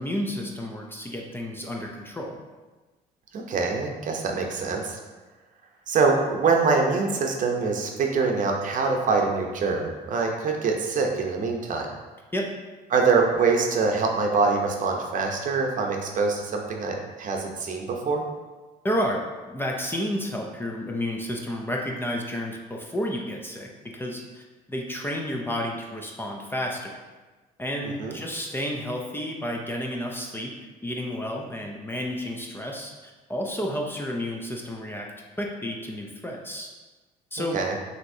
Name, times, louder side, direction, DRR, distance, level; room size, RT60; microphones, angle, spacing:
voice 1, 0.0-2.4 12.3-12.5 18.8-19.2 19.5-27.0 27.6-30.6 30.8-35.1 35.4-36.7 37.3-37.6, equal, 10° left, 0 dB, 0.5 m, -31 dB
voice 2, 3.3-5.0 5.9-11.9 12.9-18.2 28.0-28.2 37.4-37.8, right 4 dB, 50° right, 1 dB, 0.7 m, -24 dB
5.8 x 2.9 x 2.7 m, 1.3 s
cardioid pair, 110°, 17 cm